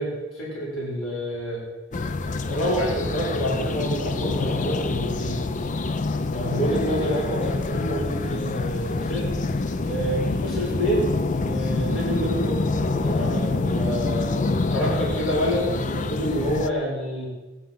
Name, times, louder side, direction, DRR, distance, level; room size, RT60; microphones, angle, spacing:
voice 1, 0.0-1.6 2.0-5.4 6.3-14.3 14.7-17.3, equal, 75° left, -6 dB, 4.7 m, -28 dB
sound 1, 1.9-16.7, left 3 dB, 40° left, 0.5 m, -26 dB
15.5 x 11.5 x 5.7 m, 1.2 s
head